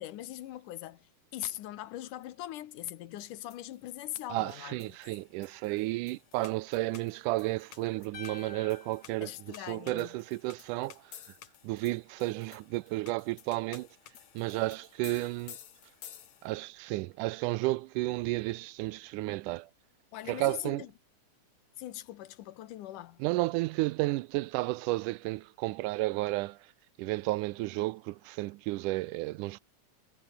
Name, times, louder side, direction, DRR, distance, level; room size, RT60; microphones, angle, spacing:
voice 1, 0.0-5.0 9.2-10.2 20.1-20.9 21.8-23.2, left 14 dB, 80° left, 2.7 m, -41 dB
sound 1, 3.2-16.7, left 10 dB, 65° left, 2.9 m, -54 dB
voice 2, 4.3-9.3 9.7-11.0 11.6-13.9 14.4-15.6 16.4-19.7 20.3-20.8 23.2-26.6 27.0-29.6, right 20 dB, 85° right, 2.1 m, -32 dB
sound 2, 8.1-10.4, left 5 dB, 45° left, 3.7 m, -50 dB
omnidirectional pair, 3.6 m